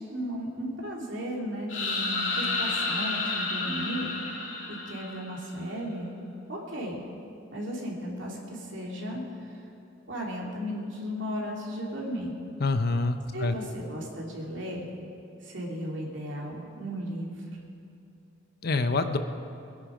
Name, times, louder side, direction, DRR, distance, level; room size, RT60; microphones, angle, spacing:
voice 1, 0.1-4.1 4.9-6.2 6.5-7.0 7.5-9.6 10.1-12.3 13.3-14.9 15.4-17.3, equal, 70° right, -2 dB, 3.1 m, -35 dB
sound 1, 1.7-5.5, left 3 dB, 80° left, 2.6 m, -31 dB
voice 2, 12.6-13.6 18.6-19.2, left 3 dB, 55° left, 9 dB, 0.8 m, -26 dB
22.5 x 10.5 x 5.1 m, 2.7 s
head